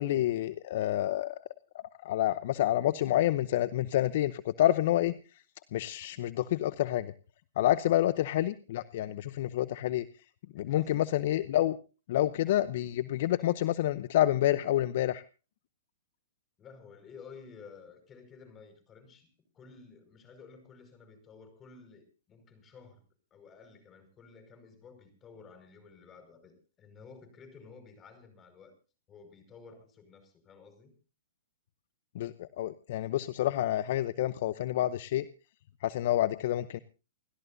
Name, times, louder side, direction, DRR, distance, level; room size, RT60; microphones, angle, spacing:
voice 1, 0.0-1.4 2.0-5.4 5.7-7.1 7.6-10.2 10.5-11.8 12.1-15.2 32.1-35.3 35.8-36.8, left 13 dB, 55° left, 15 dB, 0.8 m, -28 dB
voice 2, 10.5-10.9 16.6-23.0 23.3-28.7 29.1-30.9, left 5 dB, 20° left, 8 dB, 5.3 m, -53 dB
29.5 x 13.5 x 2.7 m, 0.34 s
hypercardioid pair, 135°, 0 cm